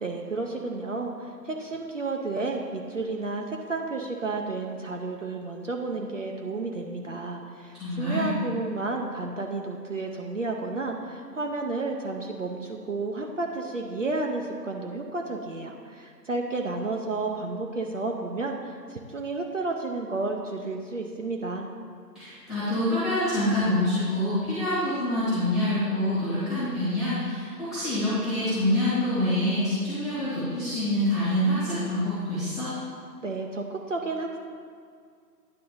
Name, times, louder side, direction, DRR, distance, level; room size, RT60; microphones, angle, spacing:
voice 1, 0.0-21.7 33.2-34.4, right 3 dB, 50° right, 1 dB, 0.7 m, -31 dB
voice 2, 7.7-8.3 22.1-32.7, left 1 dB, ahead, -16 dB, 1.1 m, -26 dB
9.8 x 3.7 x 5.4 m, 2.2 s
figure-of-eight pair, 145°, 49 cm